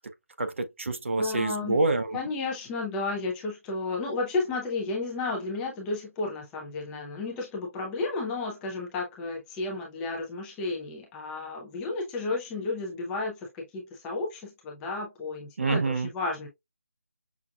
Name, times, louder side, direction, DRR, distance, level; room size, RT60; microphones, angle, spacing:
voice 1, 0.4-2.2 15.6-16.1, right 3 dB, 60° right, 0.8 m, -27 dB
voice 2, 1.2-1.8 2.1-16.5, left 3 dB, 10° left, 0.5 m, -32 dB
6.0 x 2.2 x 2.3 m
figure-of-eight pair, 170°, 8 cm